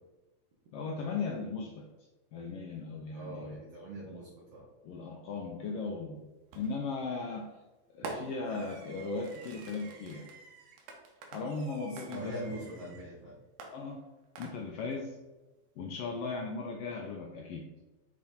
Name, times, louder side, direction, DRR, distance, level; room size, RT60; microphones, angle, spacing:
voice 1, 0.7-1.9 2.3-3.6 4.8-6.2 6.5-7.5 7.9-10.3 11.3-12.6 13.7-14.0 14.4-15.2 15.8-17.7, left 4 dB, 85° left, 1 dB, 1.3 m, -37 dB
voice 2, 3.1-4.7 8.0-8.1 11.9-13.4, right 1 dB, 60° right, -4 dB, 1.9 m, -43 dB
Fireworks, 6.5-6.9 8.0-13.1 13.6-14.9, right 2 dB, 85° right, 2.3 m, -48 dB
7.1 x 3.1 x 4.2 m, 1.1 s
omnidirectional pair, 3.3 m